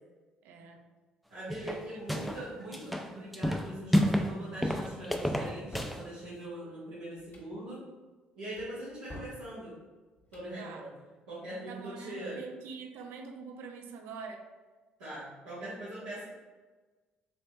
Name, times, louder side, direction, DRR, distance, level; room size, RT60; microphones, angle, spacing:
voice 1, 0.4-0.8 1.7-1.8 10.6-10.8 11.7-14.4, right 5 dB, 70° right, 4 dB, 0.4 m, -45 dB
voice 2, 1.3-7.8 8.3-9.7 10.3-10.9 11.3-12.4 15.0-16.2, right 1 dB, 90° right, -12 dB, 1.0 m, -42 dB
sound 1, 1.5-2.4 2.7-4.3 4.6-6.0, equal, ahead, 0.4 m, -29 dB
sound 2, 5.5-6.0 7.2-7.5 8.6-9.4 10.2-10.5, left 1 dB, 40° left, 0.9 m, -47 dB
3.3 x 3.2 x 2.7 m, 1.3 s
hypercardioid pair, 55°, 4 cm